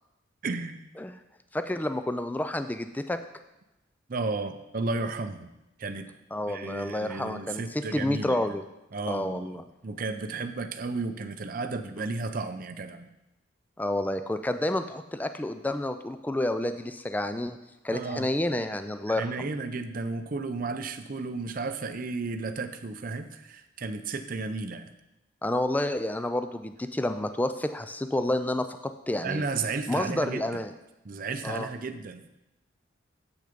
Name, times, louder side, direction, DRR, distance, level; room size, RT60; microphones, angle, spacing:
voice 1, 0.4-0.8 4.1-5.5 5.8-6.1 6.5-8.6 8.9-13.2 17.9-18.3 19.1-24.9 29.1-30.6 31.0-32.3, right 3 dB, 45° right, 8 dB, 0.5 m, -33 dB
voice 2, 1.5-3.2 6.3-8.6 9.1-9.6 12.0-12.1 13.8-17.6 17.8-19.5 25.4-28.7 29.1-29.4 29.9-30.7 31.4-31.7, left 1 dB, 10° left, 9 dB, 0.3 m, -29 dB
8.1 x 6.5 x 5.1 m, 0.93 s
head